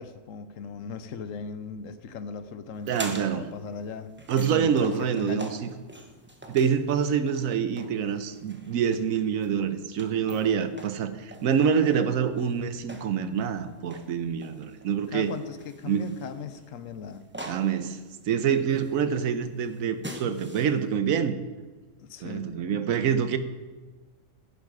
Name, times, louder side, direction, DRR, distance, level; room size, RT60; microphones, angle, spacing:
voice 1, 0.0-4.1 4.5-5.5 15.1-17.3 22.0-22.7, left 6 dB, 75° left, 11 dB, 1.2 m, -38 dB
sound 1, 2.7-21.0, right 1 dB, 10° right, 0.8 m, -45 dB
voice 2, 2.9-3.5 4.3-5.7 6.5-15.3 15.8-16.1 17.4-18.0 18.3-21.4 22.2-23.4, right 7 dB, 85° right, 11 dB, 1.2 m, -26 dB
10.5 x 10.5 x 4.9 m, 1.3 s
omnidirectional pair, 1.4 m